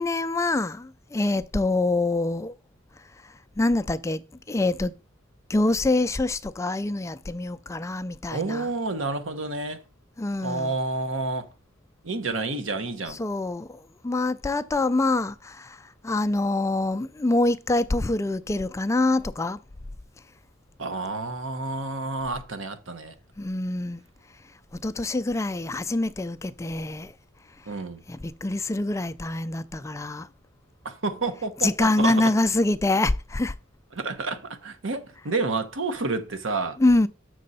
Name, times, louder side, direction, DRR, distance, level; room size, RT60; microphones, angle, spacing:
voice 1, 0.0-2.5 3.6-4.9 5.5-8.7 10.2-10.7 13.1-15.8 16.0-19.6 23.4-24.0 24.8-27.1 28.1-30.3 31.6-33.5 36.8-37.1, left 2 dB, 15° left, 0.3 m, -25 dB
voice 2, 8.3-9.8 10.4-11.5 12.0-13.2 20.8-23.1 27.7-28.0 30.8-32.3 33.9-36.8, right 3 dB, 90° right, 1.1 m, -29 dB
7.5 x 6.3 x 4.1 m
head